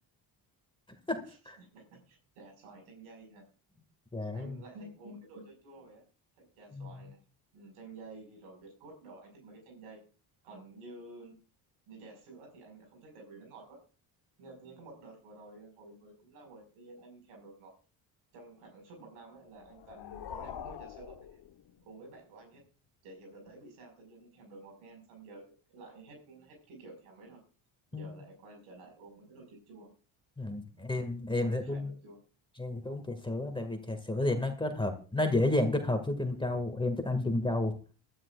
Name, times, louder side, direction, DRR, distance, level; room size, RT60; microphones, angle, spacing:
voice 1, 1.3-3.4 4.3-6.0 6.4-7.2 7.5-10.0 10.4-11.4 11.9-13.8 14.4-17.7 18.3-21.4 21.8-22.6 23.0-25.4 25.7-27.4 27.9-29.9 30.8-30.9 31.4-32.2, right 2 dB, 90° right, 3 dB, 5.5 m, -51 dB
voice 2, 4.1-4.5 6.7-6.9 27.9-28.1 30.4-31.9 32.6-37.8, left 2 dB, 10° left, 5 dB, 2.0 m, -31 dB
sound 1, 19.5-22.1, left 8 dB, 55° left, 1.2 m, -45 dB
21.5 x 12.5 x 2.5 m, 0.36 s
cardioid pair, 80°, 50 cm